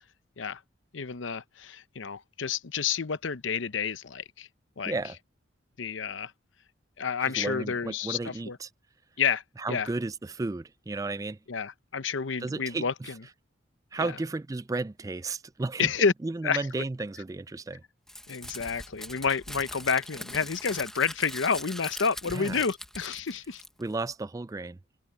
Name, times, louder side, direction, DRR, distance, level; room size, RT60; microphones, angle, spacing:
voice 1, 0.9-4.5 4.8-5.0 5.8-6.3 7.0-8.6 9.2-9.9 11.5-12.9 14.0-14.1 15.8-16.1 16.4-16.6 18.3-23.6, left 6 dB, 75° left, 0.8 m, -29 dB
voice 2, 7.2-8.7 9.6-11.4 12.4-13.1 13.9-15.9 16.2-17.8 22.3-22.6 23.8-24.8, right 3 dB, 15° right, 0.3 m, -33 dB
Crumpling crinkling, 18.1-24.0, left 1 dB, 5° left, 1.2 m, -42 dB
head